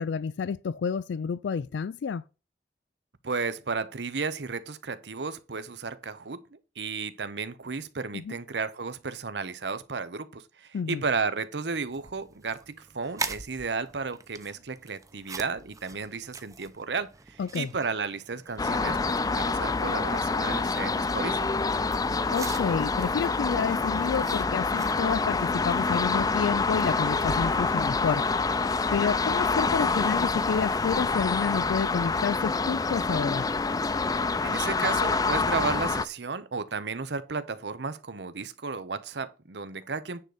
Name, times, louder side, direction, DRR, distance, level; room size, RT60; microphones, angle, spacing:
voice 1, 0.0-2.2 8.1-8.4 10.7-11.0 17.4-17.7 22.3-28.3 28.9-33.5, left 6 dB, 90° left, 0.4 m, -29 dB
voice 2, 3.2-21.5 34.4-40.2, right 4 dB, 70° right, 0.8 m, -33 dB
sound 1, 11.7-29.0, right 4 dB, 20° right, 0.7 m, -45 dB
sound 2, 18.6-36.0, left 4 dB, 20° left, 0.4 m, -27 dB
9.7 x 3.9 x 6.5 m
head